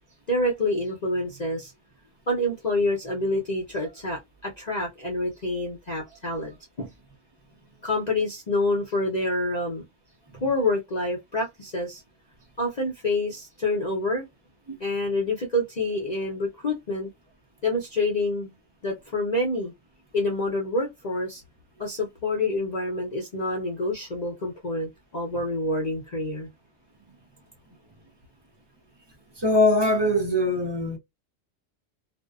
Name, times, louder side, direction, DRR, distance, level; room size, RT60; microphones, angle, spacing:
voice 1, 0.3-1.7 2.3-6.9 7.8-9.8 10.4-12.0 12.6-14.3 14.8-17.1 17.6-18.5 18.8-19.7 20.1-21.4 21.8-26.5, left 2 dB, 40° left, 0.7 m, -27 dB
voice 2, 29.4-31.0, left 2 dB, 30° right, 0.5 m, -22 dB
2.6 x 2.1 x 2.3 m
omnidirectional pair, 1.3 m